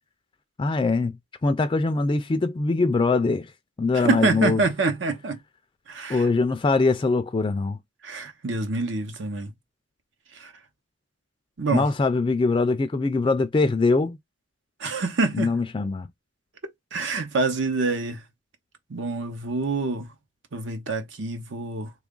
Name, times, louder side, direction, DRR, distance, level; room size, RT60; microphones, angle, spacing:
voice 1, 0.6-1.2 1.4-3.5 3.8-4.6 6.1-7.8 11.7-14.2 15.3-16.1, left 3 dB, 25° left, 0.3 m, -22 dB
voice 2, 3.9-5.4 5.9-6.3 8.0-9.5 10.3-10.5 11.6-11.8 14.8-15.5 16.9-18.2 18.9-20.1 20.5-21.9, right 3 dB, 80° right, 0.8 m, -26 dB
3.3 x 2.3 x 3.7 m
head